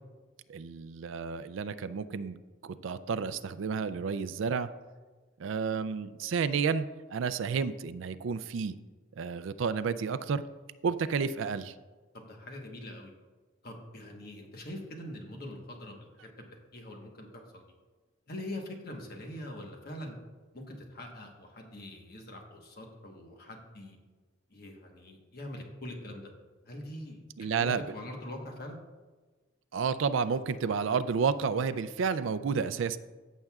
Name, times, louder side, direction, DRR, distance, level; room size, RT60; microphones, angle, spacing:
voice 1, 0.5-2.4 2.6-4.7 5.4-6.9 7.1-8.7 9.2-10.4 10.8-11.7 27.4-27.8 29.7-33.0, right 5 dB, 75° right, 13 dB, 0.4 m, -31 dB
voice 2, 12.1-13.1 13.6-16.3 16.7-17.6 18.3-20.1 20.5-24.0 24.5-26.3 26.6-27.2 27.6-28.8, left 1 dB, 50° left, 2 dB, 1.2 m, -43 dB
14.5 x 6.4 x 2.4 m, 1.3 s
head